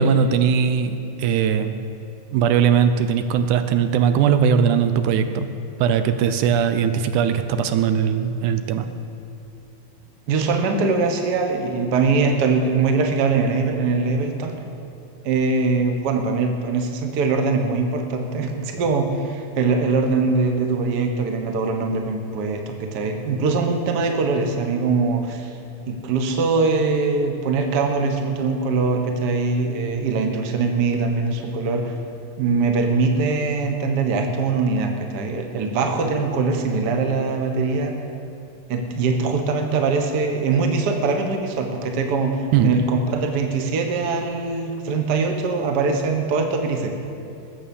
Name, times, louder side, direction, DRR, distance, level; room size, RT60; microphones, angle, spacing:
voice 1, 0.0-1.8 2.3-5.5 5.8-8.9 42.5-42.7, right 7 dB, 80° right, 9 dB, 2.1 m, -19 dB
voice 2, 10.3-14.6 15.2-25.5 25.9-31.9 32.4-37.9 38.7-46.9, right 4 dB, 55° right, 4 dB, 1.1 m, -22 dB
19.5 x 7.4 x 7.1 m, 2.7 s
omnidirectional pair, 3.6 m